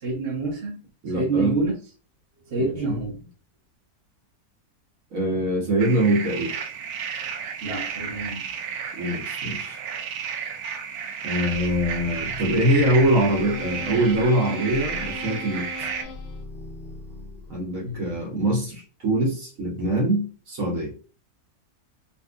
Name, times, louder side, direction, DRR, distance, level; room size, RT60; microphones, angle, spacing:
voice 1, 0.0-0.8 1.1-1.7 2.5-3.2 7.6-8.4 17.8-18.2, right 3 dB, 45° right, -1 dB, 1.1 m, -27 dB
voice 2, 1.0-1.6 2.6-3.0 5.1-6.5 9.0-9.8 11.2-15.7 17.5-20.9, right 1 dB, 60° right, -2 dB, 1.4 m, -23 dB
sound 1, 5.8-16.0, right 7 dB, 75° right, 1.0 m, -32 dB
sound 2, 11.5-17.7, left 2 dB, 65° left, 0.6 m, -37 dB
4.1 x 2.6 x 2.4 m, 0.37 s
omnidirectional pair, 1.6 m